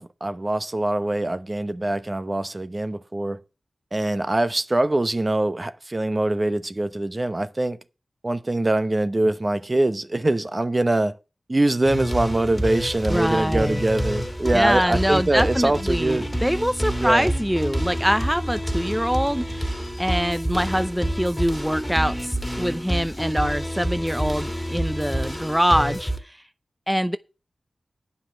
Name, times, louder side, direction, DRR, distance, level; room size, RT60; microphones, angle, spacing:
voice 1, 0.0-3.4 3.9-7.8 8.2-11.2 11.5-16.3 17.0-17.3, right 2 dB, 35° right, 0.9 m, -23 dB
sound 1, 11.8-26.2, equal, 15° left, 1.9 m, -28 dB
voice 2, 13.1-13.8 14.5-26.4 26.9-27.2, equal, 5° right, 0.6 m, -24 dB
9.9 x 5.6 x 7.8 m
cardioid pair, 40°, 0 cm